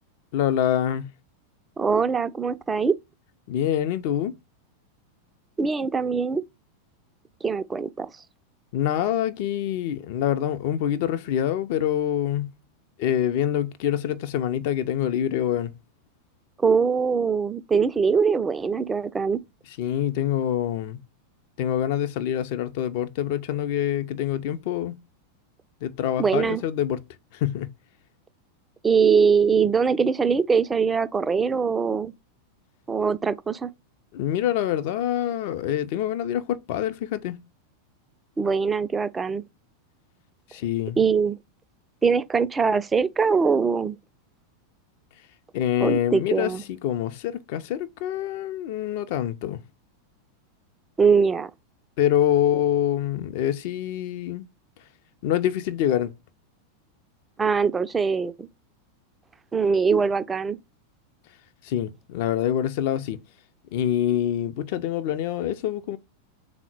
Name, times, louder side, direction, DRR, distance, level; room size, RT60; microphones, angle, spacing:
voice 1, 0.3-1.1 3.5-4.3 8.7-12.5 13.0-15.7 19.8-21.0 21.6-24.9 25.8-27.0 27.3-27.7 34.1-37.4 40.5-41.0 45.5-49.6 52.0-54.4 55.2-56.1 61.6-63.2 63.7-66.0, left 11 dB, 50° left, 0.4 m, -25 dB
voice 2, 1.8-3.0 5.6-6.4 7.4-8.1 16.6-19.4 26.2-26.6 28.8-32.1 32.9-33.7 38.4-39.4 41.0-41.4 42.0-44.0 45.8-46.6 51.0-51.5 57.4-58.5 59.5-60.6, right 5 dB, 15° right, 0.3 m, -22 dB
3.7 x 2.0 x 4.3 m
figure-of-eight pair, 90°, 0 cm